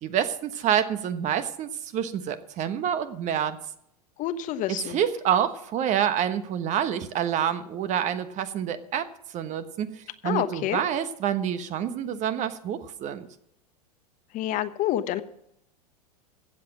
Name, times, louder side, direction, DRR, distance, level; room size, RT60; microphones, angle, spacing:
voice 1, 0.0-3.6 4.7-9.1 9.3-13.3, right 9 dB, 35° right, 11 dB, 1.2 m, -27 dB
voice 2, 4.2-5.0 10.2-10.8 14.3-15.2, left 12 dB, 40° left, 11 dB, 1.0 m, -28 dB
15.5 x 7.8 x 6.1 m, 0.75 s
hypercardioid pair, 95°, 20 cm